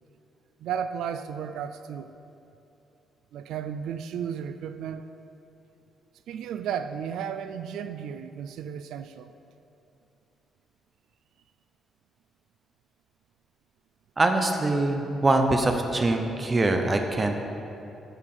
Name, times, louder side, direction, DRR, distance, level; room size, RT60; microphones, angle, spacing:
voice 1, 0.6-2.2 3.3-5.1 6.3-9.3, right 8 dB, 85° right, 11 dB, 0.3 m, -34 dB
voice 2, 14.2-17.4, right 2 dB, 20° right, 5 dB, 0.7 m, -23 dB
13.5 x 4.8 x 5.5 m, 2.8 s
cardioid pair, 175°, 0 cm